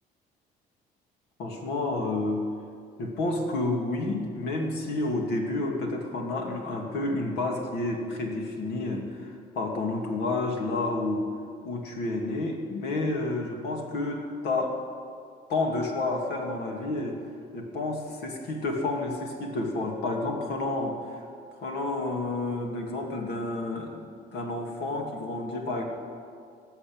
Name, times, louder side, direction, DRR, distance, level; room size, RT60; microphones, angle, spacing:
voice 1, 1.4-2.4 3.0-11.3 11.6-14.8 15.5-17.2 17.5-21.2 21.6-25.8, left 2 dB, 75° left, 1 dB, 2.6 m, -30 dB
18.5 x 7.4 x 8.9 m, 2.2 s
cardioid pair, 110°, 17 cm